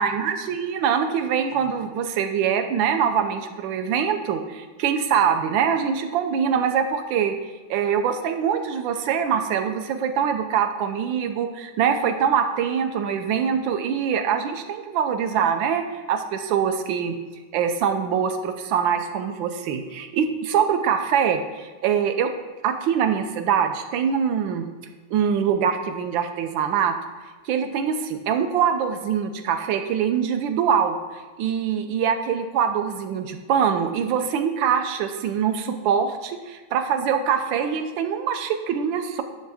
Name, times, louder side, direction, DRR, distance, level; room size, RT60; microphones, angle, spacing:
voice 1, 0.0-7.4 7.7-17.2 17.5-22.3 22.6-24.6 25.1-27.0 27.4-31.0 31.4-39.2, right 7 dB, 75° right, 7 dB, 1.3 m, -23 dB
10.0 x 3.4 x 4.8 m, 1.3 s
omnidirectional pair, 2.2 m